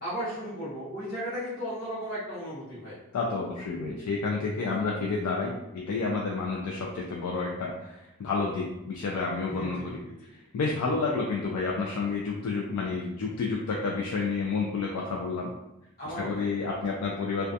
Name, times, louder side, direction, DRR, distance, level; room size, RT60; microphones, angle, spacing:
voice 1, 0.0-2.9 9.5-9.9 16.0-16.5, equal, 40° left, -10 dB, 0.9 m, -35 dB
voice 2, 3.1-10.3 10.5-15.5 16.0-17.5, left 4 dB, 90° left, -2 dB, 0.4 m, -30 dB
2.3 x 2.2 x 2.6 m, 0.92 s
head